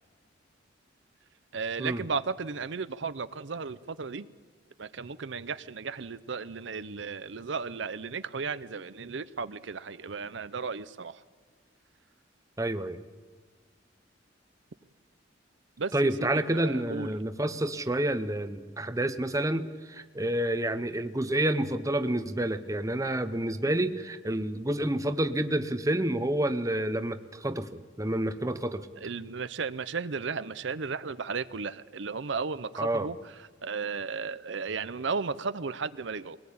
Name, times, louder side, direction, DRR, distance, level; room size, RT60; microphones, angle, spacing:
voice 1, 1.5-4.3 4.8-11.2 15.8-17.1 29.0-33.3 33.6-36.4, right 5 dB, 70° right, 14 dB, 0.7 m, -35 dB
voice 2, 12.6-13.0 15.9-28.9 32.8-33.1, right 1 dB, 15° right, 10 dB, 0.8 m, -29 dB
23.0 x 19.0 x 8.6 m, 1.5 s
head